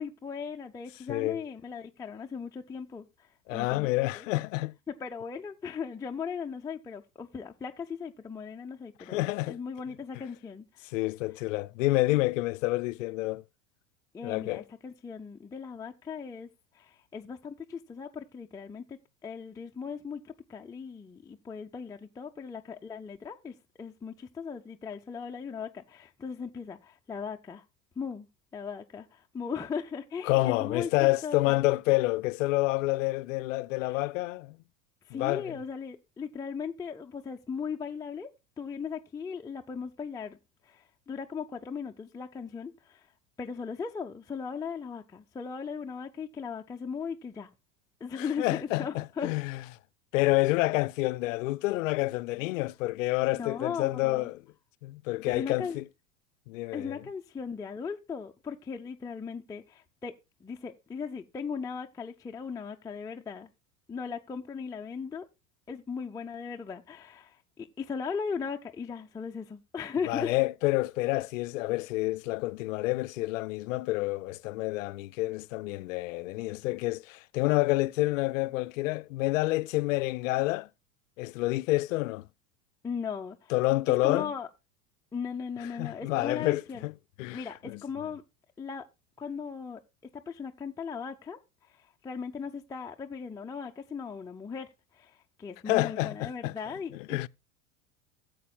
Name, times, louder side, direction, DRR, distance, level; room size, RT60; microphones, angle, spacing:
voice 1, 0.0-3.9 4.2-4.3 4.9-10.7 14.1-16.5 16.7-27.6 28.0-28.3 28.5-31.6 33.8-34.1 35.1-38.3 38.6-40.4 40.6-43.1 43.4-47.5 48.0-49.3 53.3-54.3 55.3-55.8 56.7-60.1 60.4-63.5 63.9-65.3 65.7-70.3 82.8-83.5 84.0-84.5 85.1-86.9 87.3-88.2 88.6-88.9 89.2-89.8 90.1-97.3, left 6 dB, 10° left, 0.5 m, -38 dB
voice 2, 1.1-1.4 3.5-4.8 9.0-9.6 10.9-13.4 14.2-14.6 30.3-34.6 35.1-35.6 48.2-49.6 50.1-54.4 54.8-55.8 56.5-57.0 70.1-80.7 81.2-82.3 83.5-84.3 85.8-86.9 87.2-87.8 95.7-96.5 96.9-97.3, left 20 dB, 60° left, 0.5 m, -28 dB
15.0 x 7.8 x 2.3 m
hypercardioid pair, 80°, 44 cm